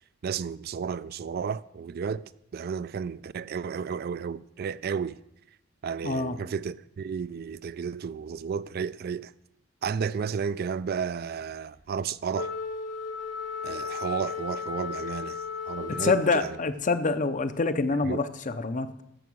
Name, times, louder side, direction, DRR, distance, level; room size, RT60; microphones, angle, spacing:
voice 1, 0.2-2.2 2.5-5.2 5.8-9.3 9.8-12.5 13.6-15.4 15.7-16.5 18.1-18.2, right 6 dB, 55° right, 0.4 m, -32 dB
voice 2, 6.0-6.4 15.9-19.0, left 3 dB, 40° left, 0.7 m, -26 dB
Wind instrument woodwind instrument, 12.3-16.7, left 5 dB, 65° left, 1.8 m, -35 dB
14.5 x 5.9 x 6.2 m
head